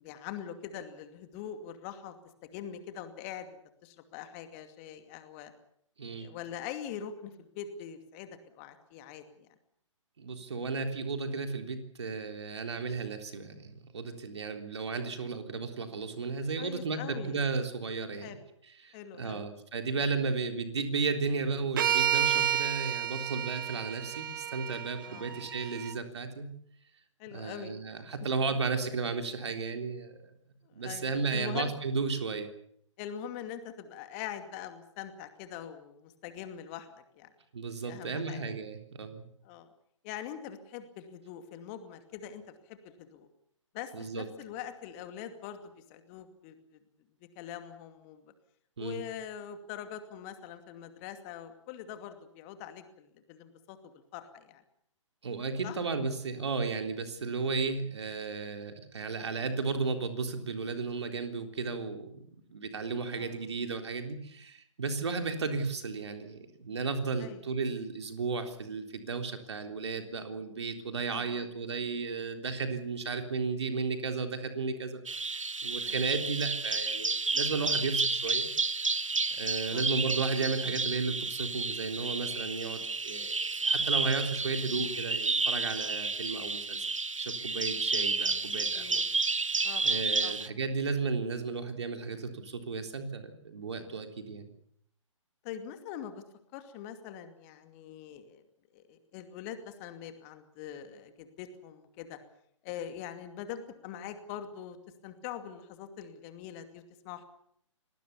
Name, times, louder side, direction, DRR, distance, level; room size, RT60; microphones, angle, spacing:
voice 1, 0.0-2.2 2.4-5.5 6.1-9.5 13.4-13.5 16.6-17.4 18.2-18.4 18.9-19.5 25.0-25.4 27.2-27.7 30.6-31.7 33.0-37.3 37.8-38.4 39.4-39.7 40.0-43.3 43.7-46.8 47.4-48.2 48.8-53.8 54.1-54.6 55.6-55.8 57.4-57.5 63.2-63.3 67.2-67.4 71.1-71.5 75.9-76.0 79.7-79.8 88.7-89.0 89.6-90.3 95.4-96.2 96.5-98.4 98.7-102.2 102.6-104.8 105.0-107.2, left 9 dB, 25° left, 8 dB, 2.4 m, -43 dB
voice 2, 6.0-6.3 10.2-18.3 18.8-26.5 27.3-30.2 30.7-32.5 37.5-39.2 43.9-44.3 48.8-49.0 55.2-62.2 62.5-78.5 79.3-86.8 87.2-89.0 89.8-94.5, right 4 dB, 60° right, 6 dB, 3.7 m, -34 dB
sound 1, 21.8-25.9, right 10 dB, 40° right, 1.0 m, -31 dB
Bird vocalization bird call bird song, 75.1-90.5, right 3 dB, 75° right, 1.2 m, -31 dB
27.5 x 19.0 x 7.1 m, 0.68 s
figure-of-eight pair, 130°, 16 cm